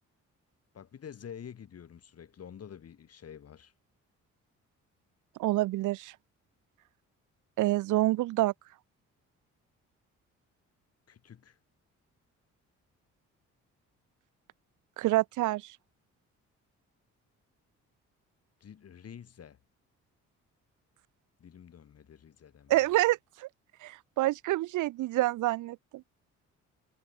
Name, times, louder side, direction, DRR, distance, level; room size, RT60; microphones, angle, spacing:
voice 1, 0.7-3.7 11.1-11.6 18.6-19.6 21.4-22.9, left 8 dB, 55° left, 4.7 m, -48 dB
voice 2, 5.4-6.1 7.6-8.5 15.0-15.6 22.7-23.5 23.8-26.0, right 17 dB, 80° right, 0.7 m, -27 dB
cardioid pair, 90°, 30 cm